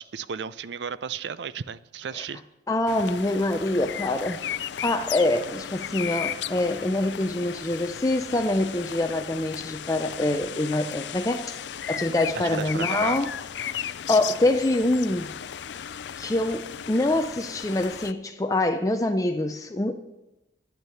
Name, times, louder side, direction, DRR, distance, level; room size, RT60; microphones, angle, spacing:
voice 1, 0.0-2.4 12.4-13.2, right 6 dB, 70° right, 0.5 m, -34 dB
voice 2, 2.7-4.4 4.8-11.5 11.9-13.3 13.7-15.3 16.2-19.9, left 2 dB, 20° left, 0.5 m, -25 dB
sound 1, 2.9-18.1, left 9 dB, 75° left, 0.4 m, -35 dB
9.9 x 9.4 x 7.0 m
head